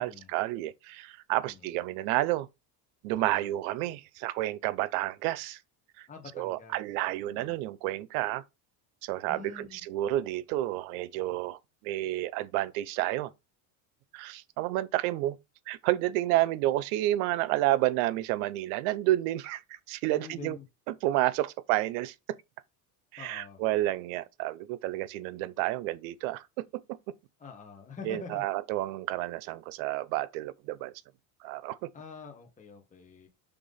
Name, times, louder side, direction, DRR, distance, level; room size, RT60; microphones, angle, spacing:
voice 1, 0.0-2.5 3.0-5.6 6.0-6.1 6.4-8.4 9.0-13.3 14.1-15.4 15.7-19.6 19.9-20.6 20.9-22.4 23.1-27.0 28.0-30.9 31.4-31.9, right 16 dB, 85° right, 0.7 m, -30 dB
voice 2, 3.2-3.5 6.1-6.8 7.2-7.5 9.3-9.8 20.1-20.6 23.2-23.6 27.4-28.5 31.9-33.3, left 5 dB, 15° left, 1.6 m, -46 dB
6.0 x 3.5 x 5.5 m
cardioid pair, 135°, 42 cm